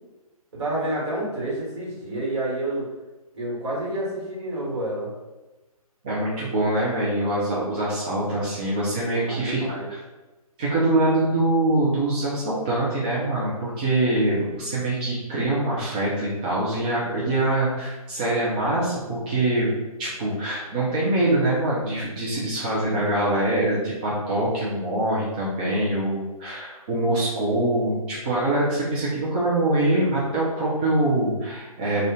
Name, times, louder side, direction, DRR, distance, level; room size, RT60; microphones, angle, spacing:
voice 1, 0.5-2.9 3.3-5.1 8.9-9.9, right 1 dB, 50° right, -4 dB, 1.3 m, -29 dB
voice 2, 6.0-9.8 10.6-19.7 20.0-32.0, right 1 dB, 15° right, -8 dB, 0.3 m, -24 dB
2.4 x 2.2 x 3.7 m, 1.1 s
figure-of-eight pair, 135°, 19 cm